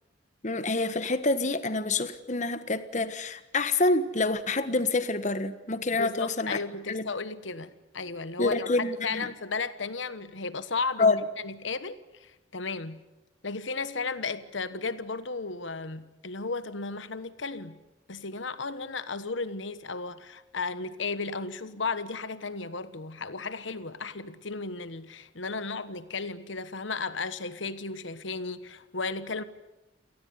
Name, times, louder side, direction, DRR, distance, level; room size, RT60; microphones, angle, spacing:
voice 1, 0.4-6.6 6.9-7.1 8.4-9.3 11.0-11.2, left 3 dB, 40° left, 1.5 m, -27 dB
voice 2, 6.0-8.7 9.0-13.0 13.4-17.8 18.1-29.4, left 4 dB, 75° left, 1.3 m, -34 dB
28.5 x 18.0 x 9.6 m
head